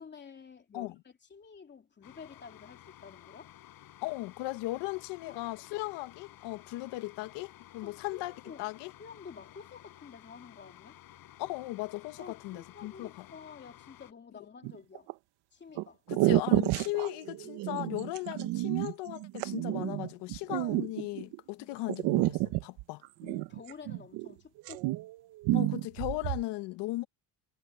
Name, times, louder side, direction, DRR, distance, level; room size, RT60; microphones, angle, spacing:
voice 1, 0.0-3.5 5.3-5.4 5.7-5.8 7.8-8.7 9.0-11.0 12.2-15.1 15.5-16.0 21.6-21.7 23.2-24.9, left 6 dB, 25° left, 3.3 m, -50 dB
sound 1, 2.0-14.1, left 13 dB, 55° left, 5.6 m, -54 dB
voice 2, 4.0-8.3 8.6-8.9 11.4-13.2 16.1-23.0 25.5-27.1, left 19 dB, 80° left, 1.3 m, -37 dB
sound 2, 14.6-15.1 15.8-15.9 16.1-21.4 21.9-24.3 24.6-25.2 25.4-26.4, right 18 dB, 80° right, 1.3 m, -30 dB
cardioid pair, 140°, 40 cm